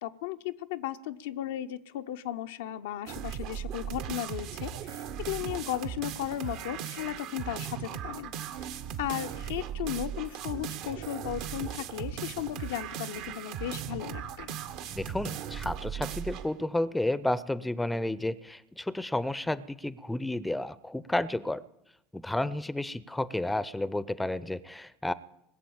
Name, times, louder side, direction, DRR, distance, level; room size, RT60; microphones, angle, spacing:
voice 1, 0.0-8.3 8.6-14.5, left 12 dB, 65° left, 9 dB, 0.7 m, -36 dB
sound 1, 3.1-16.5, right 9 dB, 55° right, 1.2 m, -38 dB
voice 2, 14.9-21.6 22.1-25.1, left 1 dB, 5° left, 19 dB, 0.7 m, -31 dB
20.0 x 7.6 x 8.7 m, 0.82 s
figure-of-eight pair, 70°, 0 cm